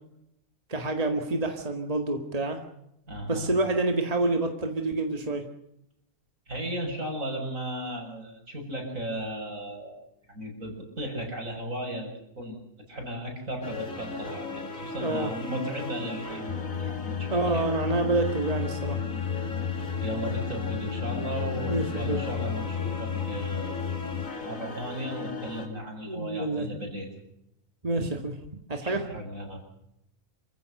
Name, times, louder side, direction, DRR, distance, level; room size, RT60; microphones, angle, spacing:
voice 1, 0.7-2.6 3.3-5.4 15.0-15.3 17.3-19.0 21.7-22.2 26.1-26.7 27.8-28.4 28.7-29.0, right 2 dB, 25° right, 4 dB, 2.1 m, -27 dB
voice 2, 3.1-3.5 6.5-10.0 10.3-12.1 12.4-12.6 12.9-16.5 16.8-17.6 20.0-23.9 24.5-27.1 28.8-29.6, right 1 dB, 75° right, 1 dB, 7.3 m, -35 dB
sound 1, 13.6-25.7, left 3 dB, 70° left, 2.9 m, -38 dB
sound 2, 16.5-24.3, left 8 dB, 30° left, 0.8 m, -32 dB
27.5 x 15.5 x 6.7 m, 0.80 s
omnidirectional pair, 1.4 m